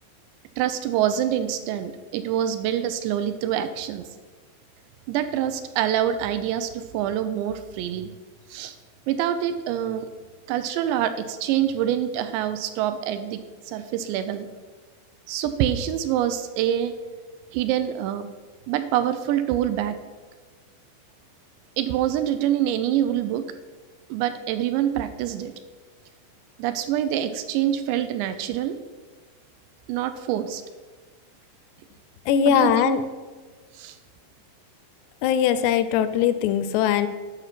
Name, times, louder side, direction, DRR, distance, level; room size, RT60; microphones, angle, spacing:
voice 1, 0.6-4.1 5.1-8.1 8.5-8.8 9.1-10.1 10.5-13.4 13.7-14.5 15.3-17.0 17.5-18.3 18.7-20.0 21.8-23.5 24.1-25.5 26.6-28.8 29.9-30.6 32.5-33.0 33.7-34.0, right 11 dB, 80° right, 9 dB, 2.7 m, -25 dB
voice 2, 32.3-33.0 35.2-37.1, left 9 dB, 80° left, 11 dB, 2.5 m, -20 dB
9.9 x 6.2 x 5.9 m, 1.4 s
omnidirectional pair, 5.2 m